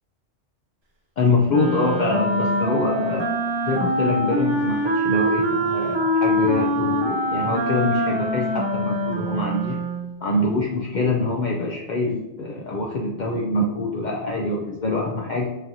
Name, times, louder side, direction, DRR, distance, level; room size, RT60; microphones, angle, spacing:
voice 1, 1.2-3.3 3.6-9.8 10.2-15.5, left 2 dB, 70° left, -2 dB, 0.4 m, -24 dB
Wind instrument woodwind instrument, 1.5-10.1, equal, 45° right, 0.3 m, -24 dB
4.9 x 2.6 x 2.8 m, 0.99 s
omnidirectional pair, 1.4 m